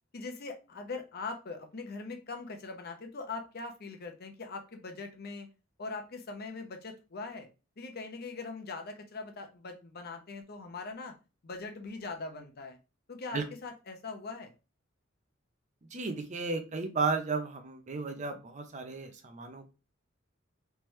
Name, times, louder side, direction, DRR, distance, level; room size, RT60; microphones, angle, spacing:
voice 1, 0.1-5.5 5.8-7.5 7.8-11.1 11.4-12.8 13.1-14.5, left 3 dB, 50° left, 4 dB, 0.7 m, -41 dB
voice 2, 15.9-19.7, right 4 dB, 35° right, 7 dB, 0.6 m, -34 dB
3.4 x 3.0 x 3.1 m, 0.31 s
head